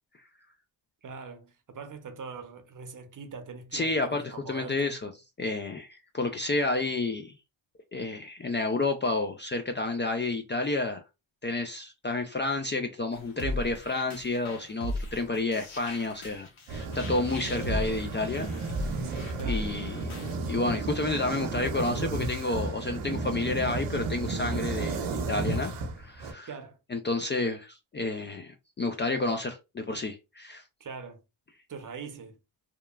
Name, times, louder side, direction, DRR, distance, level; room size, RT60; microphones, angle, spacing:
voice 1, 1.0-5.0 19.4-19.7 26.4-26.8 30.8-31.2 31.7-32.4, right 5 dB, 40° right, 0.7 m, -42 dB
voice 2, 3.7-5.1 5.4-7.3 7.9-11.0 11.4-18.5 19.0-20.0 20.5-25.7 26.0-26.5 26.9-30.6, left 2 dB, 25° left, 0.4 m, -30 dB
sound 1, 13.1-20.4, equal, 75° left, 1.0 m, -37 dB
sound 2, 16.7-26.3, right 3 dB, 85° right, 0.7 m, -33 dB
2.8 x 2.3 x 2.3 m
supercardioid pair, 60°, 48 cm